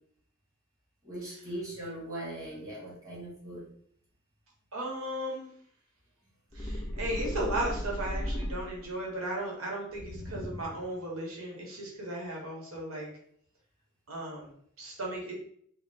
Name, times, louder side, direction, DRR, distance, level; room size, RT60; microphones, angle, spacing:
voice 1, 1.0-3.6, right 1 dB, 15° right, -6 dB, 1.5 m, -40 dB
voice 2, 4.7-5.5 6.5-13.1 14.1-15.3, right 1 dB, 75° right, -2 dB, 1.2 m, -36 dB
sound 1, 6.5-9.0 9.9-10.9, equal, 15° left, 0.6 m, -36 dB
4.7 x 2.1 x 3.5 m, 0.64 s
head